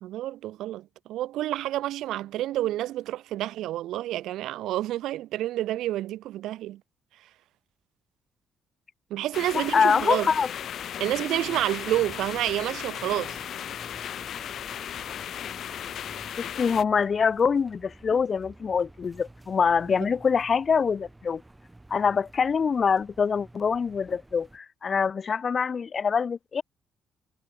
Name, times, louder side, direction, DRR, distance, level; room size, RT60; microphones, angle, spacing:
voice 1, 0.0-6.8 9.1-10.3 11.0-13.4, right 14 dB, 85° right, 0.7 m, -29 dB
sound 1, 9.3-16.8, left 9 dB, 55° left, 1.6 m, -36 dB
voice 2, 9.5-10.5 16.4-21.4 21.9-26.6, left 6 dB, 35° left, 0.4 m, -25 dB
sound 2, 9.8-24.6, right 2 dB, 10° right, 6.1 m, -52 dB
cardioid pair, 145°, 0 cm